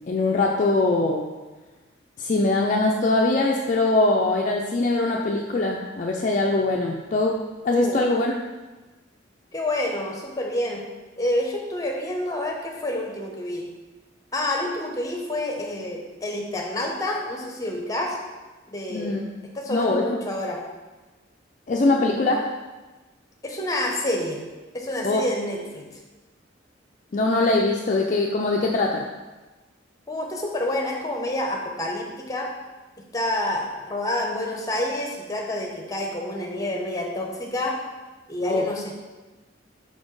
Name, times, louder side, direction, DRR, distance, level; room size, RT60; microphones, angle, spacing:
voice 1, 0.1-1.3 2.2-7.4 7.6-8.3 18.9-19.2 19.7-20.0 21.7-22.5 25.0-25.2 27.1-29.1 38.4-38.7, left 2 dB, 40° left, 0 dB, 0.4 m, -22 dB
voice 2, 7.7-8.0 9.5-10.8 11.2-13.7 14.3-18.2 18.7-19.1 19.5-20.6 23.4-24.4 24.7-25.9 30.1-32.5 33.1-37.8 38.3-38.9, left 1 dB, 20° left, 1 dB, 0.9 m, -28 dB
5.2 x 4.3 x 4.7 m, 1.2 s
head